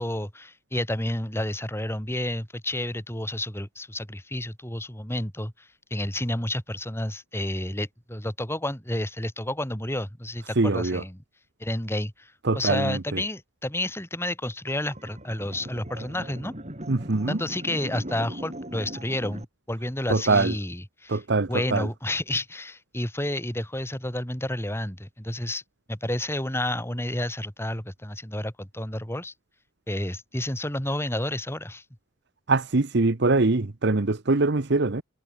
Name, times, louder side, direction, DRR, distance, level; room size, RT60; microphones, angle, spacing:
voice 1, 0.0-11.2 11.6-16.5 17.3-21.2 21.5-25.6 25.9-29.3 29.9-31.8, left 1 dB, 10° left, 5.4 m, -30 dB
voice 2, 10.6-11.0 12.4-13.2 16.9-17.4 20.1-20.5 21.1-21.9 32.5-35.0, right 3 dB, 60° right, 1.0 m, -23 dB
sound 1, 14.7-19.4, right 1 dB, 35° right, 5.5 m, -39 dB
head